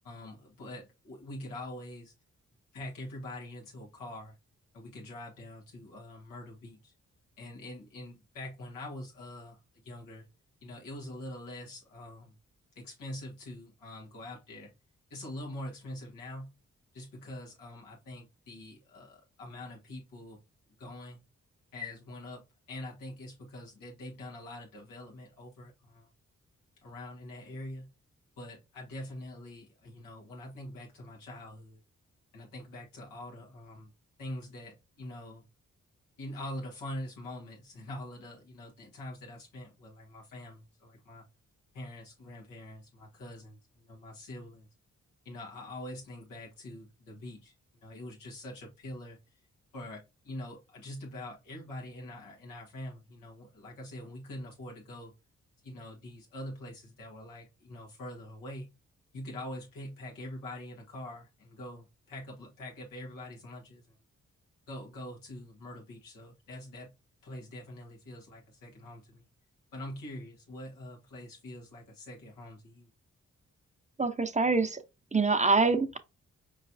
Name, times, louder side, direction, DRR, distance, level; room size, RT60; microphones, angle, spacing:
voice 1, 0.0-2.1 2.7-4.4 4.7-6.9 7.4-10.2 10.6-12.3 12.7-14.7 15.1-16.5 16.9-20.4 20.8-21.2 21.7-26.1 26.8-27.9 28.4-31.8 32.3-33.9 34.2-35.4 36.2-41.2 41.7-44.7 45.2-47.5 47.8-49.2 49.7-55.1 55.6-58.7 59.1-64.0 64.7-66.9 67.2-69.3 69.7-72.9, left 1 dB, 90° left, 1.3 m, -44 dB
voice 2, 74.0-74.8 75.1-76.0, right 3 dB, 20° right, 0.7 m, -25 dB
4.6 x 3.1 x 2.6 m
supercardioid pair, 45°, 32 cm